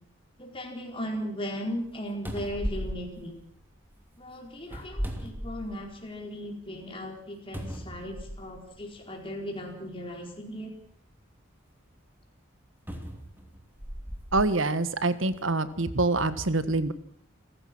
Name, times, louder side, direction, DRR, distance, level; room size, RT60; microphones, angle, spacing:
voice 1, 0.4-3.4 4.2-10.7, equal, 25° left, 1 dB, 4.5 m, -37 dB
sound 1, 1.8-1.9 2.2-3.9 4.6-6.0 6.5-6.6 7.5-8.7 9.6-9.7 12.9-14.5 15.2-15.3, equal, 10° right, 2.8 m, -36 dB
voice 2, 14.3-16.9, right 2 dB, 70° right, 13 dB, 1.6 m, -25 dB
29.0 x 15.0 x 6.2 m, 0.63 s
head